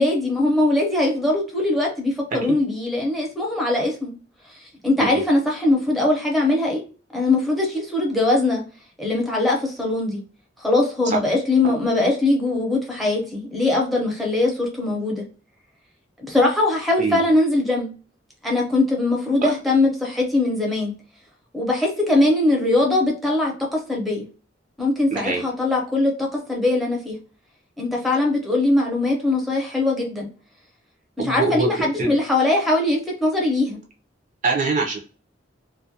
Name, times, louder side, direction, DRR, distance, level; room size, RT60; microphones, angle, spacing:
voice 1, 0.0-4.1 4.8-6.8 7.1-8.6 9.0-10.2 10.6-15.2 16.3-17.9 18.4-20.9 21.5-24.3 24.8-27.2 27.8-30.3 31.2-33.8, left 2 dB, ahead, -1 dB, 0.7 m, -21 dB
voice 2, 17.0-17.3 19.4-19.5 25.1-25.4 31.2-32.1 34.4-35.0, right 4 dB, 45° right, 0 dB, 0.5 m, -24 dB
2.3 x 2.1 x 2.6 m, 0.37 s
head